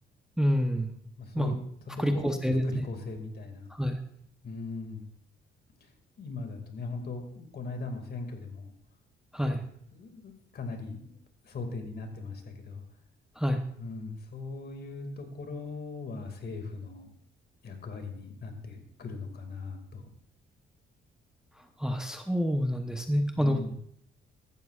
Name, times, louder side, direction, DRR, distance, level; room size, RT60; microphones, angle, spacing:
voice 1, 0.4-0.9 1.3-1.6 2.0-2.6 3.7-4.0 9.3-9.6 13.4-13.6 21.8-23.6, equal, 5° right, 5 dB, 0.9 m, -27 dB
voice 2, 1.2-1.5 1.8-3.7 4.4-5.1 5.8-5.9 6.2-8.7 9.4-9.6 9.9-11.2 11.4-12.8 13.8-17.1 17.6-20.1 23.3-23.7, left 3 dB, 55° left, 5 dB, 2.2 m, -39 dB
14.5 x 12.0 x 2.4 m, 0.67 s
cardioid pair, 90°, 20 cm